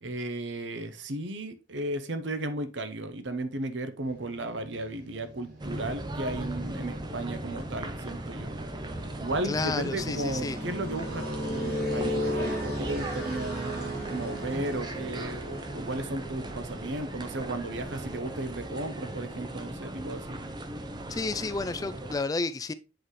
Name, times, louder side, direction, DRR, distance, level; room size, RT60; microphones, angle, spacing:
voice 1, 0.0-8.5 9.2-20.5, right 1 dB, 75° right, 0.8 m, -35 dB
sound 1, 4.0-19.6, equal, 55° right, 2.6 m, -37 dB
sound 2, 5.6-22.2, right 1 dB, 25° right, 0.6 m, -38 dB
voice 2, 9.4-10.6 21.1-22.7, left 3 dB, 20° left, 0.3 m, -31 dB
7.8 x 4.0 x 3.1 m
head